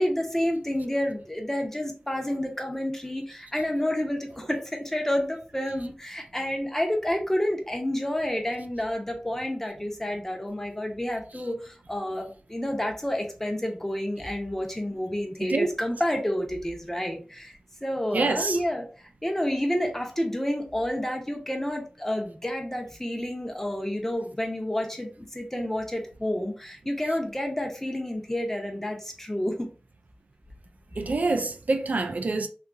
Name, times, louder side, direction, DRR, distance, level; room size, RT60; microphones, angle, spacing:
voice 1, 0.0-18.8 19.2-29.6, left 1 dB, 15° left, 0.7 m, -29 dB
voice 2, 18.1-18.6 31.0-32.5, right 3 dB, 75° right, 0.4 m, -26 dB
2.8 x 2.4 x 2.5 m
wide cardioid pair, 65°, 3 cm